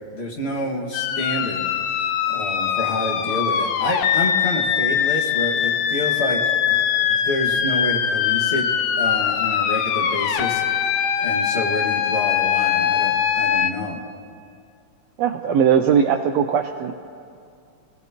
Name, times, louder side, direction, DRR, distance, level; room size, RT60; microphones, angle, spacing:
voice 1, 0.1-1.7 2.3-6.4 6.7-8.7 9.0-10.6 11.2-14.0, left 1 dB, 30° left, -1 dB, 1.2 m, -28 dB
sound 1, 0.9-13.7, left 8 dB, 90° left, 2.3 m, -22 dB
voice 2, 15.2-16.9, right 7 dB, 85° right, 5 dB, 1.5 m, -19 dB
28.0 x 17.5 x 2.9 m, 2.4 s
omnidirectional pair, 3.5 m